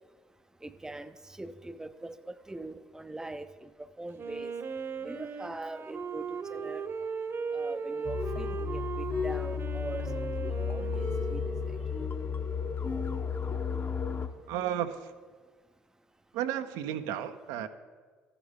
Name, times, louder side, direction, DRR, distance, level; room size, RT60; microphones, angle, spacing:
voice 1, 0.6-4.5 5.0-6.9 7.5-11.8, right 2 dB, 10° right, 12 dB, 0.6 m, -42 dB
Wind instrument woodwind instrument, 4.2-11.8, right 5 dB, 40° right, 1.0 m, -37 dB
sound 1, 8.0-14.3, left 6 dB, 35° left, 1.0 m, -33 dB
voice 2, 14.5-15.0 16.3-17.7, right 10 dB, 70° right, 9 dB, 0.7 m, -33 dB
14.5 x 6.8 x 3.7 m, 1.5 s
hypercardioid pair, 55°, 7 cm